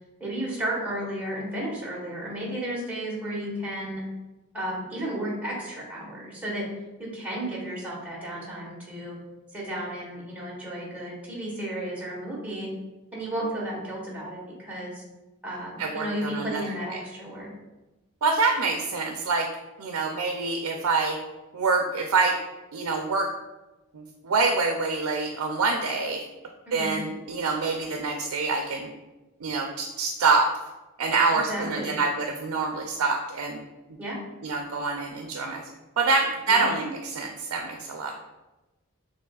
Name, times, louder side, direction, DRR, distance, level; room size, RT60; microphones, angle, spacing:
voice 1, 0.2-4.0 4.5-6.6 7.0-9.2 9.5-12.7 13.1-15.0 15.4-17.5 26.7-26.9 31.5-31.9 34.0-34.2 36.5-36.7, right 1 dB, 5° right, -6 dB, 1.3 m, -33 dB
voice 2, 15.8-16.6 18.2-19.5 19.8-21.2 21.5-22.4 22.7-23.3 23.9-26.2 26.7-28.9 29.4-30.5 31.0-33.6 34.4-35.7 36.0-38.1, right 4 dB, 90° right, 3 dB, 0.4 m, -26 dB
6.5 x 3.1 x 2.3 m, 1.1 s
head